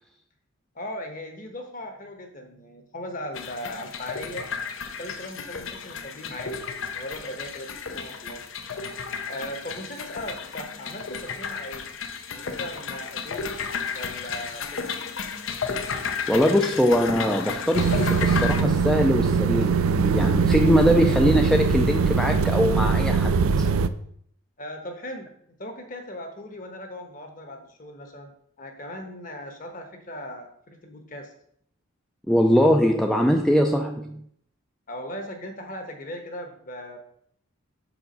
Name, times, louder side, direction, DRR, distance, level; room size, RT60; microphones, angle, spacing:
voice 1, 0.7-4.5 5.0-8.4 9.3-11.9 12.3-13.5 13.9-15.0 24.6-28.3 28.6-31.3 34.9-37.0, left 1 dB, 40° left, 5 dB, 1.1 m, -38 dB
sound 1, 3.3-18.6, left 5 dB, 70° left, 0.7 m, -33 dB
voice 2, 16.3-23.4 32.3-34.2, equal, ahead, 2 dB, 0.4 m, -22 dB
sound 2, 17.7-23.9, right 5 dB, 85° right, 0.4 m, -22 dB
6.4 x 4.8 x 5.2 m, 0.67 s
head